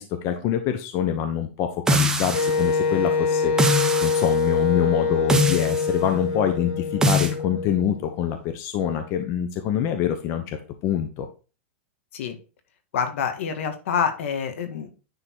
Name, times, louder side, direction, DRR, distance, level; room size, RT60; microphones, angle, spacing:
voice 1, 0.0-10.6 10.8-11.3, left 9 dB, 45° left, 7 dB, 1.0 m, -25 dB
sound 1, 1.9-2.7 3.6-4.3 5.3-5.9 7.0-7.3, equal, 10° right, 1.1 m, -22 dB
Wind instrument woodwind instrument, 2.3-8.2, left 5 dB, 60° left, 1.8 m, -24 dB
voice 2, 12.9-14.9, left 7 dB, 75° left, 7 dB, 2.0 m, -26 dB
10.0 x 3.9 x 4.8 m, 0.34 s
supercardioid pair, 135°, 7 cm